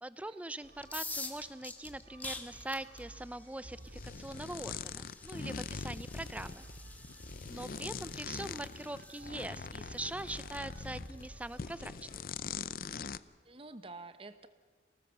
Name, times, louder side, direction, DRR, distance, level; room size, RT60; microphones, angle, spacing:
voice 1, 0.0-6.7 7.5-12.2, right 1 dB, 10° right, 15 dB, 0.5 m, -42 dB
sound 1, 0.6-12.2, right 1 dB, 75° right, 2.5 m, -55 dB
sound 2, 0.8-12.5, left 3 dB, 10° left, 1.4 m, -48 dB
sound 3, 3.9-11.3 11.6-13.2, left 5 dB, 50° left, 0.6 m, -42 dB
voice 2, 13.4-14.5, right 3 dB, 30° right, 11 dB, 1.0 m, -49 dB
24.5 x 18.0 x 6.9 m, 1.5 s
head